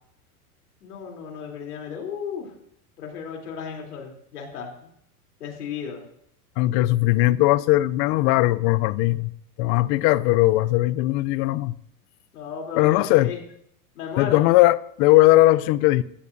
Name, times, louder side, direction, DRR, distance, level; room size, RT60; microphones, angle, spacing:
voice 1, 0.8-2.5 3.0-4.7 5.4-6.0 12.3-13.4 14.0-14.5, left 6 dB, 90° left, 3.6 m, -34 dB
voice 2, 6.6-9.3 9.6-11.8 12.7-13.3 14.2-16.0, left 17 dB, 45° left, 0.6 m, -19 dB
15.5 x 14.0 x 2.7 m
hypercardioid pair, 115°, 44 cm